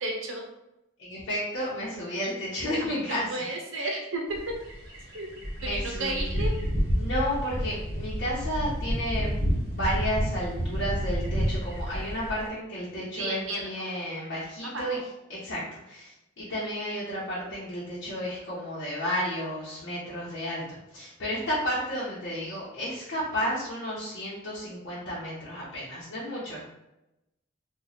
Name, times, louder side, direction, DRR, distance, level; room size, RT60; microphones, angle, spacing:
voice 1, 0.0-0.4 2.9-4.5 5.1-5.3 5.6-6.5 13.2-14.0 14.6-15.0, right 2 dB, 75° right, 1 dB, 0.7 m, -33 dB
voice 2, 1.0-3.2 5.6-6.5 6.9-9.3 9.7-15.0 15.3-16.1 16.4-26.6, equal, 65° left, -8 dB, 0.9 m, -32 dB
sound 1, 4.3-12.5, equal, 55° right, 1.1 m, -30 dB
2.9 x 2.3 x 4.0 m, 0.91 s
head